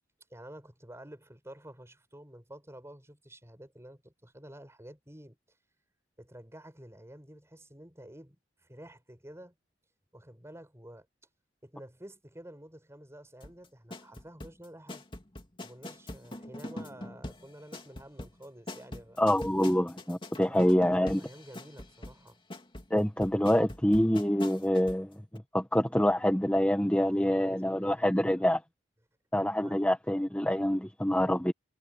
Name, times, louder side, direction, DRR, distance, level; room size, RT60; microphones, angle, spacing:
voice 1, 0.3-5.4 6.2-9.5 10.1-11.1 11.6-15.1 15.6-19.3 20.4-22.4 26.9-28.5 29.6-29.8, right 1 dB, 15° right, 5.3 m, -50 dB
sound 1, 13.4-25.1 25.3-25.4, left 1 dB, 25° left, 2.8 m, -43 dB
voice 2, 19.2-21.2 22.9-28.6 29.3-31.5, equal, 5° left, 1.3 m, -26 dB
head